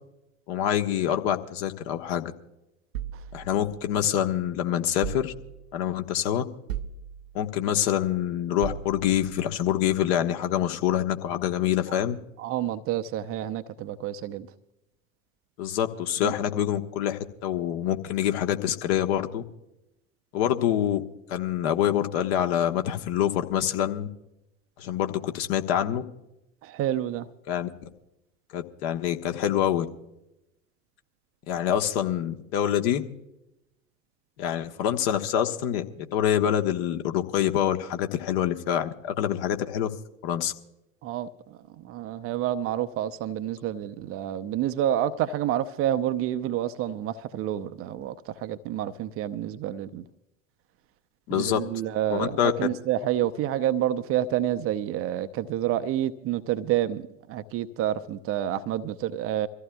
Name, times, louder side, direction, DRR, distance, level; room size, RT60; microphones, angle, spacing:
voice 1, 0.5-2.3 3.3-5.3 5.7-6.4 7.3-12.2 15.6-19.4 20.3-21.0 21.3-24.1 24.8-26.0 27.5-27.7 28.5-29.9 31.5-33.0 34.4-39.9 40.2-40.5 51.3-51.6 52.1-52.5, left 10 dB, 50° left, 1.3 m, -26 dB
sound 1, 2.9-4.3 5.0-5.9 6.7-7.6 8.6-9.4, right 9 dB, 70° right, 0.9 m, -38 dB
voice 2, 12.4-14.5 16.2-16.3 26.6-27.3 41.0-41.6 41.8-50.0 51.3-59.5, right 11 dB, 35° right, 0.7 m, -28 dB
25.5 x 14.5 x 2.3 m
figure-of-eight pair, 80°, 41 cm